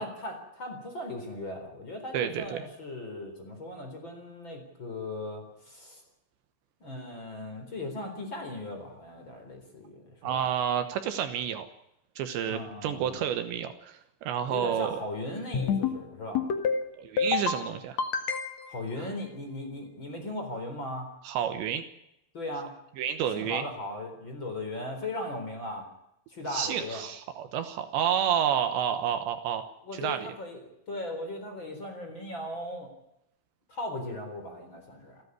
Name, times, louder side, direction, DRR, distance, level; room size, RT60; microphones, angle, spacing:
voice 1, 0.0-6.0 6.8-10.4 12.5-13.2 14.5-16.5 18.7-21.1 22.3-22.7 23.3-25.9 26.3-27.0 29.8-32.9 33.7-35.2, left 1 dB, 25° left, 4 dB, 4.0 m, -38 dB
voice 2, 2.1-2.6 10.2-11.7 12.2-15.0 17.0-18.0 19.0-19.1 21.2-21.8 23.0-23.6 26.5-30.3, right 9 dB, 70° right, 9 dB, 3.2 m, -30 dB
sound 1, 15.5-16.0 16.3-16.8 17.2-17.6 18.0-18.8, left 6 dB, 55° left, 2.1 m, -27 dB
29.0 x 11.0 x 9.6 m, 0.82 s
omnidirectional pair, 5.6 m